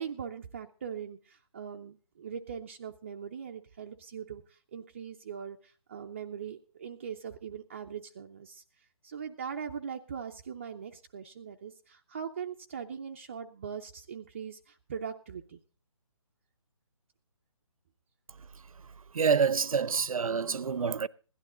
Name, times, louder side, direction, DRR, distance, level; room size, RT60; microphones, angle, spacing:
voice 1, 0.0-15.6, right 7 dB, 20° right, 0.5 m, -41 dB
voice 2, 19.1-21.1, right 6 dB, 75° right, 0.8 m, -27 dB
16.5 x 11.5 x 3.8 m
hypercardioid pair, 165°, 18 cm